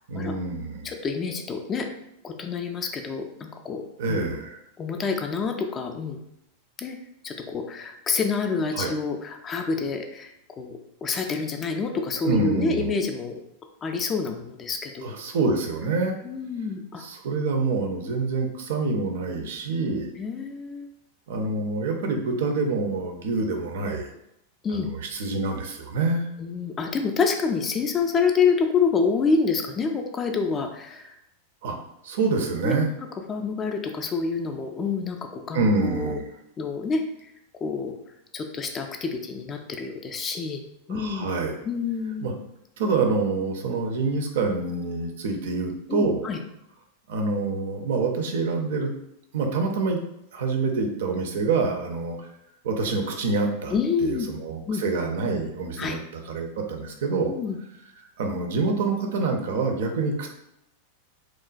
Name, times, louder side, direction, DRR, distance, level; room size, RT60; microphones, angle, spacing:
voice 1, 0.1-0.9 4.0-4.6 8.7-8.9 12.2-12.9 15.0-16.2 17.0-20.1 21.3-24.1 24.7-26.3 31.6-31.8 32.0-32.9 35.5-36.2 40.9-41.6 42.2-42.3 42.8-46.2 47.1-48.9 49.3-50.0 50.3-52.2 52.6-57.3 58.2-60.3, right 3 dB, 55° right, 3 dB, 0.4 m, -26 dB
voice 2, 0.8-1.9 2.2-3.8 4.1-4.2 4.8-6.2 6.8-7.0 7.2-13.4 13.8-15.1 16.2-17.1 20.2-20.9 24.6-24.9 26.4-31.1 32.6-32.7 33.3-36.2 36.6-37.0 37.6-37.9 38.3-40.6 40.9-41.3 41.7-42.3 45.9-46.4 53.7-54.3 54.7-54.8 55.8-56.0 57.3-57.6, left 5 dB, 25° left, 4 dB, 0.3 m, -27 dB
2.9 x 2.1 x 2.4 m, 0.80 s
figure-of-eight pair, 90°, 0 cm